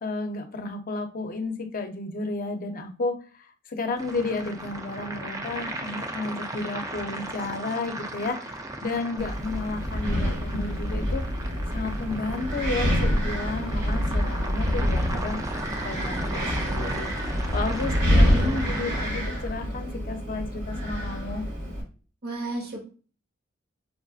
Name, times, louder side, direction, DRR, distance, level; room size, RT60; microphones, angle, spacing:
voice 1, 0.0-11.2 11.7-15.4 15.8-17.1 17.5-21.4, left 3 dB, 45° left, 6 dB, 0.5 m, -32 dB
sound 1, 4.0-19.1, right 2 dB, 15° right, 0.3 m, -36 dB
Wind, 9.2-21.8, equal, 80° right, 1.5 m, -26 dB
voice 2, 18.0-18.7 22.2-22.8, right 2 dB, 55° right, 1 dB, 1.0 m, -34 dB
4.9 x 2.4 x 2.4 m, 0.37 s
head